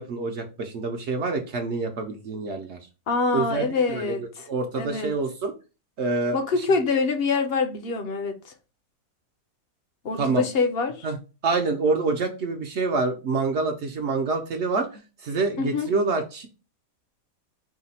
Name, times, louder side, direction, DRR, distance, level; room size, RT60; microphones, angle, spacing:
voice 1, 0.0-2.8 3.3-4.2 4.5-5.5 6.0-6.4 10.2-10.4 11.0-11.2 11.4-16.5, right 3 dB, 60° right, 0.8 m, -26 dB
voice 2, 3.1-4.4 4.7-5.1 6.3-8.5 10.0-11.1 15.6-15.9, left 4 dB, 55° left, 0.7 m, -25 dB
4.8 x 2.2 x 4.1 m
omnidirectional pair, 1.5 m